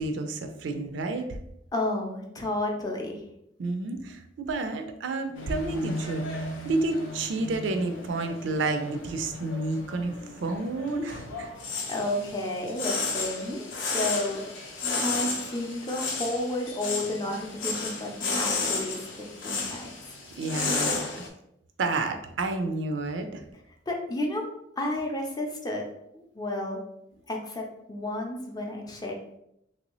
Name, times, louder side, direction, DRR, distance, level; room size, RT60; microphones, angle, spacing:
voice 1, 0.0-1.4 3.6-11.5 20.4-21.0 21.8-23.4, right 3 dB, 70° right, 6 dB, 0.4 m, -30 dB
voice 2, 1.7-3.2 11.9-14.4 14.9-20.1 23.9-24.4 24.8-25.8 26.1-26.8 27.3-29.4, left 1 dB, 20° left, 0 dB, 0.5 m, -32 dB
sound 1, 5.3-21.3, left 3 dB, 75° left, 0.6 m, -33 dB
3.2 x 2.6 x 2.9 m, 0.79 s
head